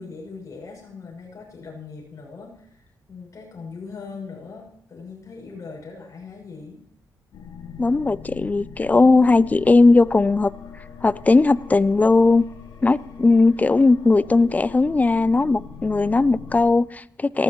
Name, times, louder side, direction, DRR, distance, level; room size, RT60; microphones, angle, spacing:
voice 1, 0.0-6.8, left 4 dB, 45° left, 6.6 m, -40 dB
sound 1, 7.3-16.7, left 7 dB, 90° left, 2.2 m, -41 dB
voice 2, 7.8-10.5 11.0-12.4 12.8-17.4, left 3 dB, 20° left, 0.4 m, -18 dB
19.0 x 15.0 x 3.1 m
cardioid pair, 90°, 7 cm